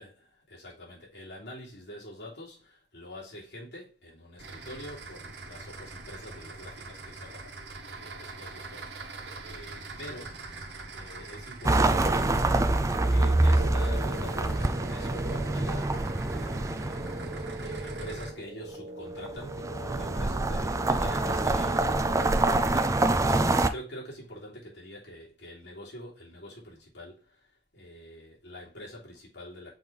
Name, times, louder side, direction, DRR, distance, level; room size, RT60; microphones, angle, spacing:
voice 1, 0.0-7.6 7.9-10.5 10.9-17.1 17.6-29.8, left 1 dB, 80° left, 3.3 m, -46 dB
sound 1, 4.4-18.3, right 2 dB, 80° right, 1.2 m, -43 dB
sound 2, 11.6-18.1 19.3-23.7, right 2 dB, 20° right, 0.4 m, -26 dB
sound 3, 11.7-22.6, right 2 dB, 60° right, 1.0 m, -41 dB
6.2 x 3.5 x 5.2 m
head